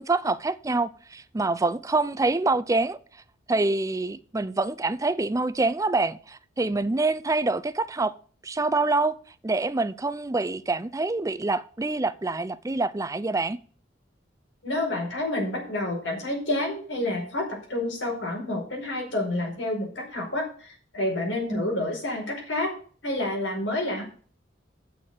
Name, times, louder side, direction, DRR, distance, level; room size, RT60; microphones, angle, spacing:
voice 1, 0.0-3.0 3.5-8.1 8.4-9.2 9.4-13.6 21.5-21.7, right 3 dB, 20° right, 0.5 m, -26 dB
voice 2, 14.6-22.7 23.0-24.0, left 1 dB, 90° left, 4.8 m, -29 dB
8.4 x 6.5 x 7.4 m
head